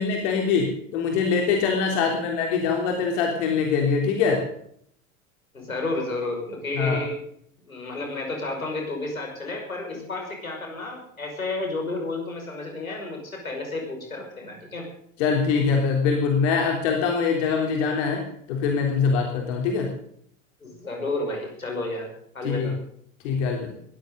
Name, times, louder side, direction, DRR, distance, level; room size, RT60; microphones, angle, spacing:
voice 1, 0.0-4.4 6.8-7.0 15.2-18.2 18.5-19.9 22.4-22.7 23.2-23.7, left 5 dB, 55° left, 1 dB, 3.5 m, -23 dB
voice 2, 5.5-7.2 7.6-14.9 20.6-22.1 22.3-22.8, left 2 dB, 85° left, 1 dB, 5.9 m, -31 dB
21.5 x 14.0 x 3.9 m, 0.65 s
figure-of-eight pair, 75°, 41 cm